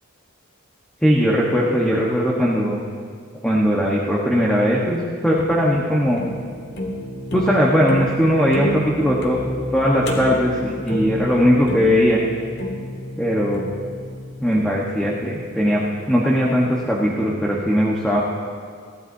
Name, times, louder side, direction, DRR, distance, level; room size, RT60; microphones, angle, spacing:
voice 1, 1.0-2.8 3.4-6.2 7.3-9.4 9.7-12.2 13.2-13.6 14.4-18.2, equal, 5° left, -5 dB, 1.1 m, -19 dB
sound 1, 4.9-16.1, left 1 dB, 50° left, 1.7 m, -31 dB
21.0 x 15.5 x 2.7 m, 2.1 s
head